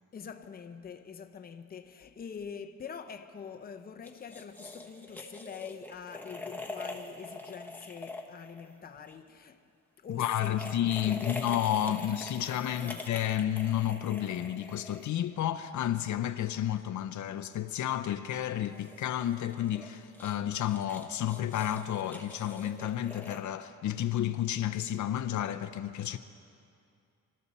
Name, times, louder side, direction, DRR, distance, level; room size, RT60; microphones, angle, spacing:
voice 1, 0.1-9.7 10.0-10.7 11.0-11.6 11.9-12.0 12.5-13.0, left 7 dB, 30° left, 0.6 m, -45 dB
sound 1, 4.0-9.2 10.2-15.4 18.6-23.4, left 2 dB, 5° left, 0.9 m, -44 dB
voice 2, 10.2-26.2, left 11 dB, 70° left, 0.6 m, -31 dB
25.0 x 13.5 x 4.2 m
wide cardioid pair, 170°, 31 cm